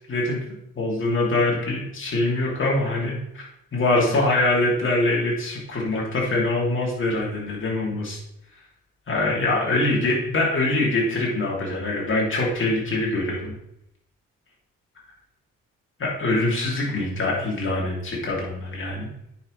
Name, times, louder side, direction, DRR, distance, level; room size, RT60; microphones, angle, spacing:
voice 1, 0.1-0.4 0.7-3.5 3.7-8.2 9.1-13.5 16.0-19.1, left 2 dB, 40° left, -3 dB, 3.0 m, -24 dB
9.3 x 5.9 x 3.3 m, 0.79 s
cardioid pair, 90°, 30 cm